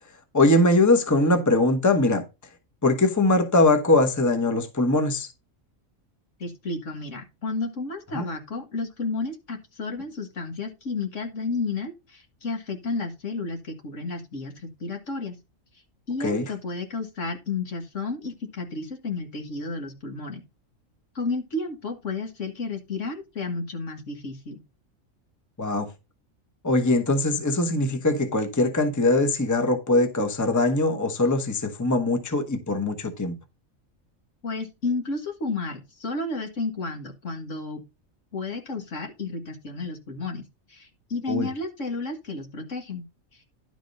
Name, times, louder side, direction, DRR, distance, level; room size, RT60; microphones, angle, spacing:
voice 1, 0.3-2.2 2.8-5.3 8.1-8.2 16.2-16.5 25.6-25.9 26.6-33.3 41.3-41.5, left 2 dB, 15° left, 1.1 m, -21 dB
voice 2, 6.4-15.4 16.1-20.4 21.2-24.6 34.4-37.8 38.3-40.4 40.7-43.0, left 3 dB, 65° left, 2.0 m, -32 dB
11.5 x 4.2 x 5.3 m
omnidirectional pair, 1.4 m